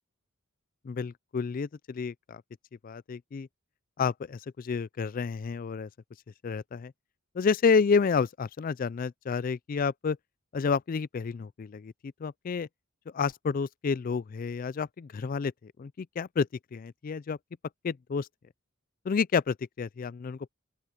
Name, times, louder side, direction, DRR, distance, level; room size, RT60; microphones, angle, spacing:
voice 1, 0.8-2.4 2.8-3.5 4.0-5.9 6.4-6.9 7.3-10.2 10.5-11.9 12.2-12.7 13.1-17.4 17.8-18.3 19.1-20.5, left 5 dB, 40° left, 0.3 m, -30 dB
open air
head